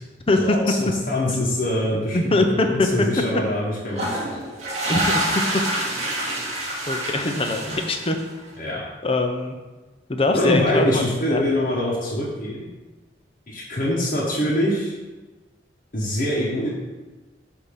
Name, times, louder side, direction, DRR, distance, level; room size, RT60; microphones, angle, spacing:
voice 1, 0.4-2.2 2.7-4.3 8.6-8.8 10.3-12.7 13.5-14.9 15.9-16.7, left 1 dB, 50° left, -6 dB, 1.1 m, -24 dB
voice 2, 1.9-2.9 4.9-5.2 6.9-8.2 9.0-9.6 10.1-11.0 11.3-11.4, left 2 dB, 30° left, 4 dB, 0.6 m, -22 dB
sound 1, 3.9-8.4, right 1 dB, 40° right, 1.6 m, -27 dB
8.1 x 2.9 x 5.7 m, 1.2 s
head